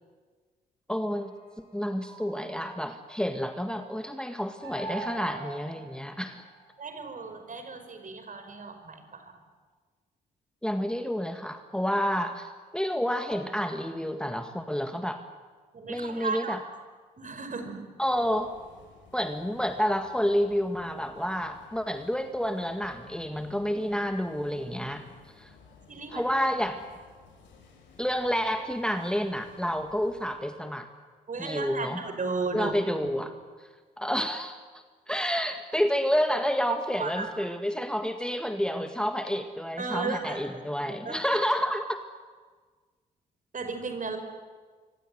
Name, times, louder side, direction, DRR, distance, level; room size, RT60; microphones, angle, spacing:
voice 1, 0.9-1.3 1.7-6.4 10.6-15.2 15.9-16.6 18.0-18.5 19.1-25.0 25.4-25.5 26.1-26.8 28.0-30.9 31.4-32.0 32.5-33.3 34.0-34.6 35.1-42.0, equal, 5° left, 7 dB, 1.9 m, -29 dB
sound 1, 1.1-3.4 4.6-6.9, right 3 dB, 65° right, 6.5 m, -43 dB
voice 2, 6.8-9.3 15.7-16.6 17.2-17.8 25.9-26.3 31.3-32.7 33.0-33.2 37.0-37.3 39.8-40.4 40.9-41.2 43.5-44.2, right 4 dB, 40° right, 7 dB, 5.4 m, -35 dB
sound 2, 18.1-30.3, left 4 dB, 65° left, 6.0 m, -56 dB
25.5 x 25.0 x 9.4 m, 1.5 s
figure-of-eight pair, 40°, 20 cm